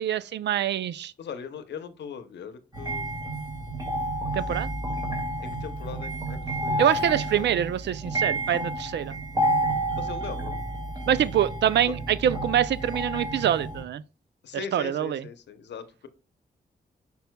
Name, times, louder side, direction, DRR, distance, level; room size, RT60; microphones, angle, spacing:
voice 1, 0.0-1.1 4.3-4.7 6.8-9.1 11.1-14.0 14.7-15.2, right 10 dB, 80° right, 0.4 m, -25 dB
voice 2, 1.2-3.3 5.4-6.8 7.3-7.5 10.0-10.6 11.8-11.9 14.4-16.1, left 7 dB, 85° left, 0.8 m, -40 dB
sound 1, 2.7-13.8, right 1 dB, 25° right, 1.9 m, -30 dB
9.1 x 5.4 x 2.2 m
cardioid pair, 55°, 18 cm